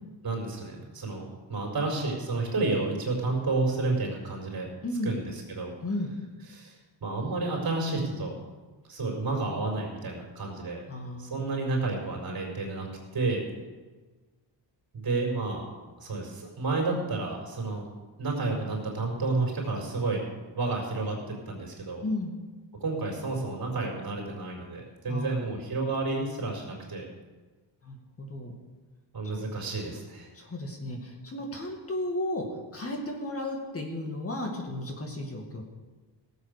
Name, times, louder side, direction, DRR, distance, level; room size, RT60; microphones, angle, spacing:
voice 1, 0.2-4.7 5.0-5.7 6.5-8.3 8.9-10.8 11.2-12.9 13.1-13.4 14.9-15.6 16.0-17.9 18.2-20.2 20.6-22.0 22.8-27.1 29.1-30.3, right 3 dB, 50° right, 0 dB, 4.7 m, -30 dB
voice 2, 5.8-6.1 10.9-11.4 22.0-22.3 25.1-25.5 27.8-28.6 30.3-32.4 32.7-35.6, left 1 dB, 30° left, 1 dB, 2.2 m, -34 dB
17.0 x 8.1 x 6.8 m, 1.3 s
cardioid pair, 125°, 45 cm